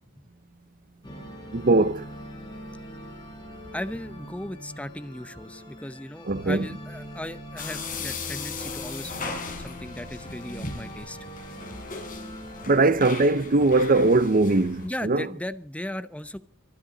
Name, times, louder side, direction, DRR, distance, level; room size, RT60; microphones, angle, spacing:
sound 1, 1.0-12.7, equal, 20° left, 7.5 m, -42 dB
voice 1, 1.5-2.1 6.2-6.7 12.7-15.3, right 2 dB, 40° right, 0.7 m, -21 dB
voice 2, 3.7-11.2 14.8-16.4, left 1 dB, 5° left, 0.9 m, -37 dB
sound 2, 7.6-14.9, left 4 dB, 40° left, 5.2 m, -38 dB
24.0 x 12.0 x 4.0 m
head